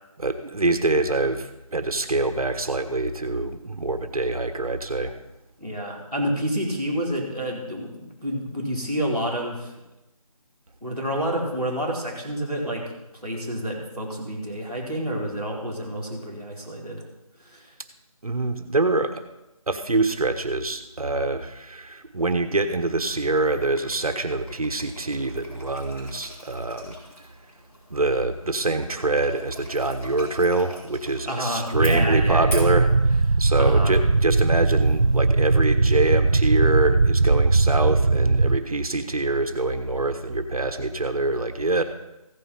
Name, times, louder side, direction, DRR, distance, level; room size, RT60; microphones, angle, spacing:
voice 1, 0.2-5.1 18.2-19.2 19.7-26.9 27.9-41.8, right 2 dB, 70° right, 8 dB, 1.3 m, -25 dB
voice 2, 5.6-9.7 10.8-12.8 13.2-17.0 17.4-17.7 31.2-32.7 33.6-34.0, equal, 5° left, -13 dB, 2.2 m, -29 dB
sound 1, 22.5-35.2, right 1 dB, 20° left, 4.2 m, -43 dB
sound 2, 31.7-38.6, right 3 dB, 50° right, 0.4 m, -19 dB
16.0 x 5.7 x 5.7 m, 0.96 s
figure-of-eight pair, 180°, 19 cm